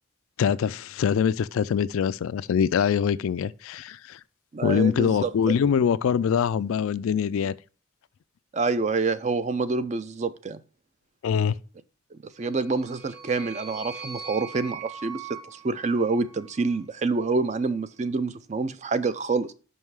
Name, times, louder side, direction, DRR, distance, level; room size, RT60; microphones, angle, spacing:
voice 1, 0.4-4.2 4.6-7.5 11.2-11.5, left 7 dB, 70° left, 0.3 m, -24 dB
voice 2, 4.5-5.5 8.5-10.6 12.1-19.5, right 3 dB, 35° right, 0.4 m, -27 dB
sound 1, 12.4-16.8, right 5 dB, 50° right, 1.4 m, -42 dB
5.5 x 5.5 x 4.7 m
head